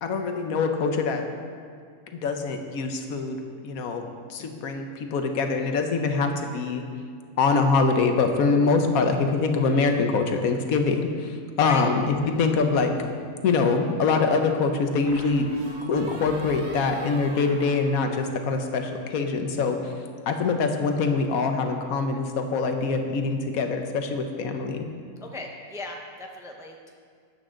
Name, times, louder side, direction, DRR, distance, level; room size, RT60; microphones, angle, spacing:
voice 1, 0.0-1.2 2.2-6.8 7.4-12.9 13.4-15.5 15.8-19.9 20.3-24.9, left 4 dB, 80° left, 5 dB, 1.3 m, -24 dB
sound 1, 12.3-13.2 15.0-18.7, right 2 dB, 70° right, 1.6 m, -39 dB
voice 2, 25.2-26.9, left 2 dB, 5° right, 1 dB, 0.6 m, -37 dB
12.5 x 8.7 x 3.8 m, 2.2 s
omnidirectional pair, 1.5 m